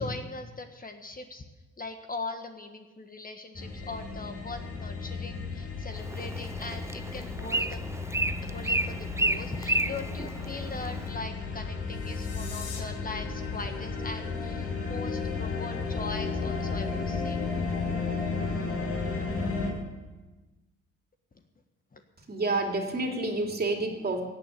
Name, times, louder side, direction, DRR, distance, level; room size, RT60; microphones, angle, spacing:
voice 1, 0.0-1.5 1.8-7.8 8.4-17.4 21.9-22.0, left 3 dB, 30° left, 6 dB, 1.4 m, -40 dB
sound 1, 3.5-19.7, left 4 dB, 50° left, 5.4 m, -33 dB
Bird, 6.0-11.1, right 2 dB, 10° right, 0.5 m, -32 dB
sound 2, 11.8-12.8, left 6 dB, 80° left, 2.7 m, -43 dB
voice 2, 22.3-24.2, right 2 dB, 30° right, 2 dB, 2.9 m, -29 dB
17.0 x 9.0 x 8.2 m, 1.2 s
cardioid pair, 90°, 30 cm